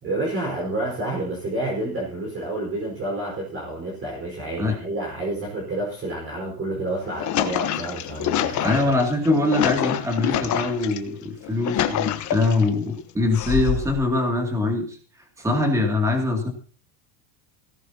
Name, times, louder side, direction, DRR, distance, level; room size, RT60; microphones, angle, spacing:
voice 1, 0.0-8.9, right 2 dB, 30° right, -2 dB, 4.7 m, -29 dB
sound 1, 6.9-11.0 11.4-12.7 13.3-14.0, left 10 dB, 40° left, 1.2 m, -26 dB
voice 2, 8.6-15.0 15.4-16.5, left 2 dB, 5° right, 2 dB, 2.5 m, -23 dB
18.0 x 16.0 x 2.9 m, 0.39 s
cardioid pair, 150°, 46 cm